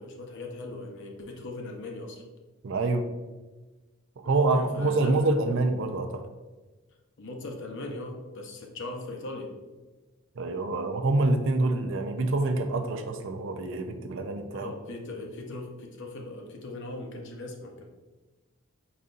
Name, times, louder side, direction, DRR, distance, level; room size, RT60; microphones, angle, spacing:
voice 1, 0.0-2.2 4.2-5.4 7.2-9.5 14.5-17.9, left 2 dB, 60° left, 2 dB, 0.8 m, -39 dB
voice 2, 2.6-3.1 4.2-6.3 10.4-14.7, right 2 dB, 65° right, 6 dB, 0.5 m, -26 dB
5.1 x 4.1 x 2.5 m, 1.2 s
head